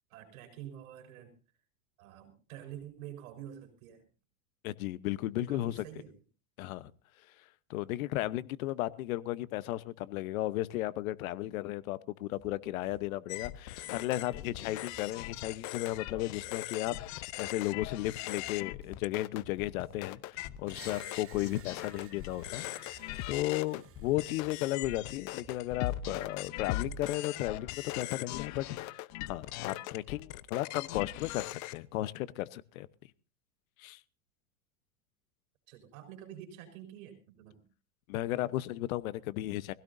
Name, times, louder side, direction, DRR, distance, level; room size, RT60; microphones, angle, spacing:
voice 1, 0.1-1.3 2.0-4.0 5.4-6.1 35.7-37.6, right 10 dB, 65° right, 4.7 m, -47 dB
voice 2, 4.6-5.8 6.6-6.9 7.7-23.0 23.3-32.9 33.8-34.0 38.1-39.7, left 15 dB, 65° left, 1.1 m, -35 dB
sound 1, 12.3-28.2, right 6 dB, 15° right, 3.4 m, -60 dB
sound 2, 13.3-31.8, left 15 dB, 40° left, 0.7 m, -40 dB
Screech, 20.7-24.7, right 10 dB, 30° right, 1.3 m, -56 dB
22.5 x 16.5 x 2.7 m
hypercardioid pair, 120°, 44 cm